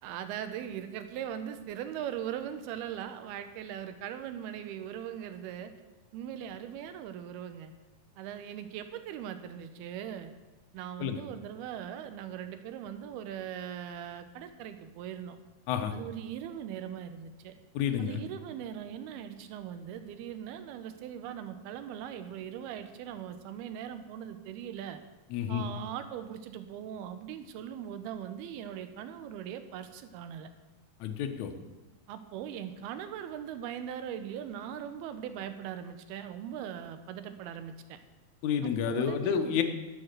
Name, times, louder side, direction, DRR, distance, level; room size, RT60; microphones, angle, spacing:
voice 1, 0.0-5.7 6.1-7.7 8.2-10.3 10.7-15.4 15.9-17.6 18.0-25.0 25.5-30.5 32.1-38.0 38.6-39.6, right 9 dB, 85° right, 9 dB, 2.7 m, -40 dB
voice 2, 17.7-18.2 25.3-25.6 31.0-31.5 38.4-39.6, left 8 dB, 70° left, 5 dB, 1.8 m, -30 dB
11.5 x 6.9 x 6.5 m, 1.2 s
omnidirectional pair, 4.4 m